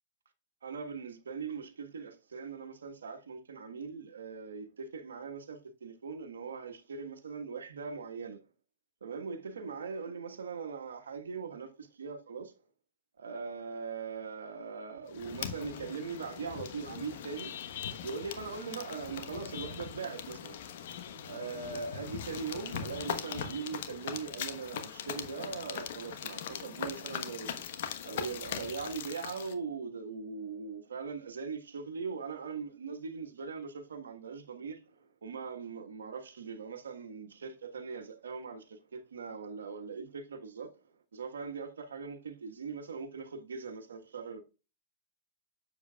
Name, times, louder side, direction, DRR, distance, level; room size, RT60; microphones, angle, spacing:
voice 1, 0.6-8.4 9.0-12.5 13.2-17.5 18.0-20.6 21.2-27.7 28.0-40.7 41.1-44.4, right 5 dB, 80° right, 1.3 m, -41 dB
sound 1, 15.1-29.5, left 8 dB, 65° left, 1.1 m, -40 dB
7.3 x 7.2 x 2.3 m
hypercardioid pair, 110°, 0 cm